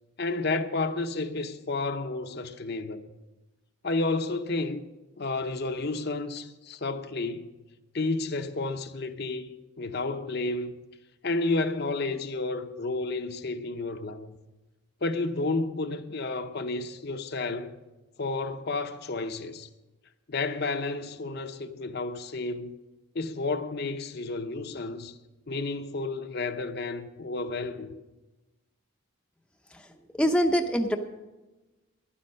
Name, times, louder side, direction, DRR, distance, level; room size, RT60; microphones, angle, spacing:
voice 1, 0.2-3.1 3.8-4.8 5.2-7.5 7.9-9.5 9.8-10.7 11.2-14.4 15.0-17.7 18.2-19.7 20.3-22.8 23.1-25.2 25.5-27.9, left 3 dB, 50° left, 0.7 m, -31 dB
voice 2, 30.2-31.0, equal, 5° left, 0.6 m, -23 dB
11.5 x 9.9 x 6.4 m
head